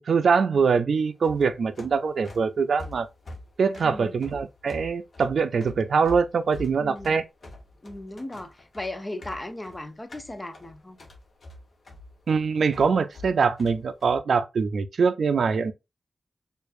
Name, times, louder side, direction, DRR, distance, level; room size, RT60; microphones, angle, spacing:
voice 1, 0.1-3.1 3.6-7.2 12.3-15.7, right 5 dB, 75° right, 0.4 m, -23 dB
sound 1, 1.1-14.2, left 2 dB, 50° left, 0.9 m, -45 dB
voice 2, 3.8-4.2 6.7-7.2 7.8-11.0, left 1 dB, 20° left, 0.5 m, -37 dB
4.5 x 2.5 x 2.5 m
wide cardioid pair, 160°, 0 cm